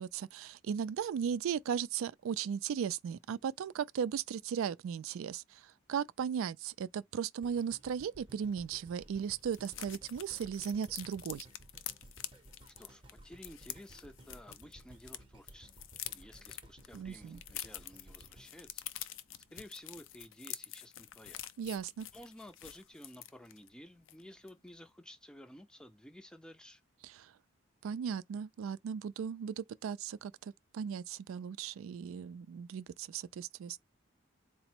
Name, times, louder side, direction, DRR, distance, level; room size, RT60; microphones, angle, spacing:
voice 1, 0.0-11.5 16.9-17.4 21.6-22.1 27.0-27.3 27.8-33.8, right 7 dB, 85° right, 0.3 m, -37 dB
sound 1, 7.4-19.6 20.2-20.3, right 1 dB, 25° right, 0.7 m, -58 dB
sound 2, 8.5-8.6 8.9-9.0 9.2-15.2 15.5-23.7 24.1-24.2 24.5-24.7, left 13 dB, 70° left, 0.4 m, -47 dB
voice 2, 12.7-15.7 16.1-18.9 19.5-21.4 22.1-26.8, left 1 dB, 5° left, 0.4 m, -53 dB
4.0 x 2.0 x 4.3 m
head